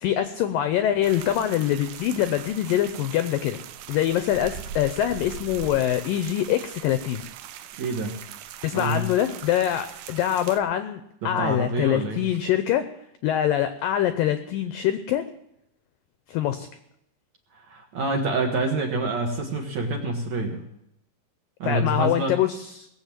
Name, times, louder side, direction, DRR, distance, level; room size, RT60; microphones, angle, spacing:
voice 1, 0.0-3.6 3.9-7.3 8.6-12.8 13.2-15.2 16.3-16.7 21.6-22.9, left 11 dB, 80° left, 10 dB, 2.0 m, -24 dB
sound 1, 1.0-10.6, right 8 dB, 75° right, 2.5 m, -41 dB
voice 2, 7.8-8.2 8.7-9.1 11.2-12.2 17.5-20.6 21.6-22.3, right 2 dB, 60° right, 1 dB, 2.1 m, -27 dB
19.0 x 7.8 x 7.5 m, 0.81 s
omnidirectional pair, 4.9 m